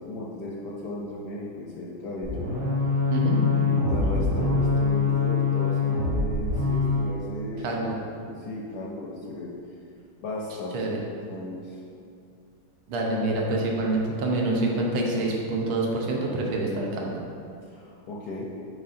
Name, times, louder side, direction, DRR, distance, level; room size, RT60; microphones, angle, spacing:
voice 1, 0.0-2.4 3.5-7.8 8.1-9.5 10.2-10.8 11.3-11.8 17.6-18.4, left 2 dB, 70° left, -3 dB, 1.0 m, -35 dB
sound 1, 2.2-7.1, left 4 dB, 45° right, 1.0 m, -24 dB
voice 2, 7.6-7.9 10.7-11.0 12.9-17.1, right 2 dB, 85° right, -1 dB, 1.7 m, -26 dB
7.5 x 4.9 x 2.6 m, 2.5 s
omnidirectional pair, 2.3 m